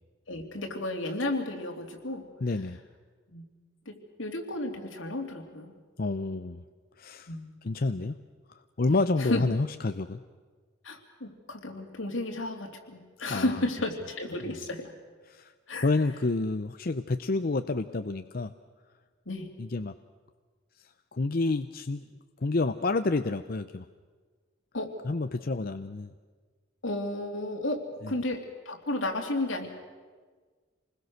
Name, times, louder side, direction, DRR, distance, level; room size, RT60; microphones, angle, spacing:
voice 1, 0.3-2.2 3.3-3.5 3.8-5.7 7.3-7.7 8.9-9.4 10.8-14.9 15.7-15.9 19.3-19.5 24.7-24.9 26.8-29.7, left 2 dB, 80° left, 3 dB, 3.1 m, -33 dB
voice 2, 2.4-2.8 6.0-6.6 7.0-7.3 7.6-8.1 8.8-10.2 13.3-13.6 14.5-14.6 15.3-15.5 15.8-18.5 19.6-19.9 20.8-22.0 22.4-23.8 25.0-26.1 28.0-28.1, left 3 dB, 50° left, 10 dB, 0.6 m, -29 dB
27.5 x 21.0 x 6.5 m, 1.5 s
head